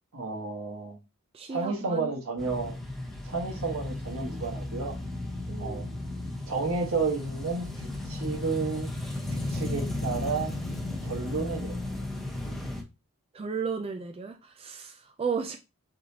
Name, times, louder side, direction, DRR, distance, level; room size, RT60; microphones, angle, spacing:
voice 1, 0.1-1.0 1.5-2.8 3.2-5.0 5.6-5.8 6.5-8.9 9.3-10.5 11.0-11.9, right 4 dB, 70° right, 1.3 m, -31 dB
voice 2, 1.3-2.1 5.5-5.9 13.3-15.6, right 5 dB, 25° right, 0.4 m, -34 dB
sound 1, 2.4-12.8, left 2 dB, ahead, 1.0 m, -35 dB
4.5 x 4.0 x 2.8 m
head